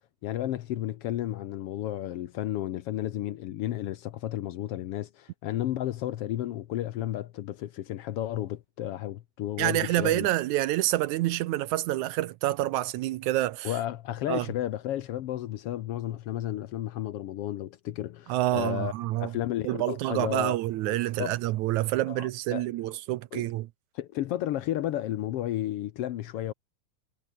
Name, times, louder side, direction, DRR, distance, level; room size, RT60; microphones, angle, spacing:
voice 1, 0.2-10.3 13.6-18.9 19.2-20.6 20.9-21.3 22.1-22.7 23.3-23.5 23.9-26.5, left 13 dB, 80° left, 1.3 m, -32 dB
voice 2, 9.6-13.7 14.3-14.5 18.3-19.3 19.6-23.7, right 15 dB, 75° right, 1.9 m, -27 dB
omnidirectional pair, 3.8 m